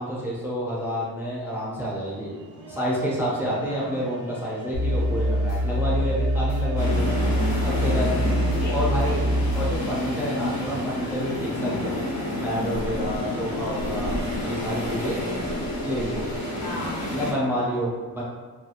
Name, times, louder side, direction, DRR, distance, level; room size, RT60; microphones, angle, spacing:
voice 1, 0.0-2.3 2.7-7.1 7.6-8.1 8.7-9.3 9.5-12.0 12.3-14.1 14.4-15.2 15.8-16.3 17.1-18.2, equal, 5° right, -6 dB, 0.3 m, -29 dB
sound 1, 2.0-16.7, right 4 dB, 70° right, 0.7 m, -42 dB
voice 2, 3.7-4.1 8.2-9.4 11.5-11.9 15.1-15.7 16.6-17.1, left 1 dB, 70° left, -2 dB, 0.7 m, -37 dB
sound 2, 4.7-9.8, equal, 85° left, 1.1 m, -24 dB
sound 3, 6.8-17.3, left 1 dB, 45° left, 1.0 m, -29 dB
2.8 x 2.7 x 2.4 m, 1.5 s
cardioid pair, 160°, 41 cm